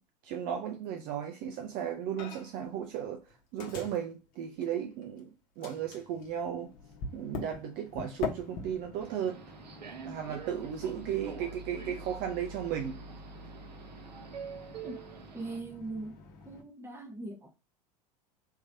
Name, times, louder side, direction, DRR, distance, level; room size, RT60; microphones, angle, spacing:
voice 1, 0.2-3.2 3.5-5.3 5.6-6.7 7.1-9.4 10.0-13.0, right 9 dB, 40° right, 0.7 m, -35 dB
Microwave oven, 2.2-2.7 2.9-5.2 5.6-16.6, left 4 dB, 40° left, 1.0 m, -44 dB
Subway metro underground, 9.0-15.6, right 7 dB, 80° right, 0.6 m, -46 dB
voice 2, 15.3-16.2 16.5-17.6, right 2 dB, 10° right, 1.0 m, -40 dB
3.7 x 3.1 x 2.7 m
figure-of-eight pair, 80°, 21 cm